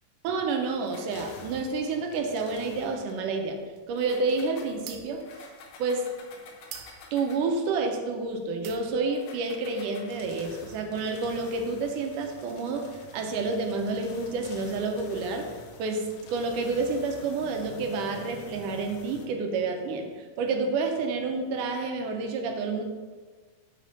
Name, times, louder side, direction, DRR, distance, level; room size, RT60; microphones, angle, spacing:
voice 1, 0.2-3.6 3.9-5.2 5.8-6.1 7.1-15.5 15.8-22.8, right 3 dB, 75° right, 4 dB, 2.2 m, -29 dB
sound 1, 0.8-3.2 3.9-7.6 9.1-19.3, left 5 dB, 80° left, 2.7 m, -49 dB
sound 2, 3.2-8.3 8.6-9.2, right 8 dB, 90° right, 2.7 m, -47 dB
7.7 x 5.4 x 5.1 m, 1.5 s
omnidirectional pair, 4.1 m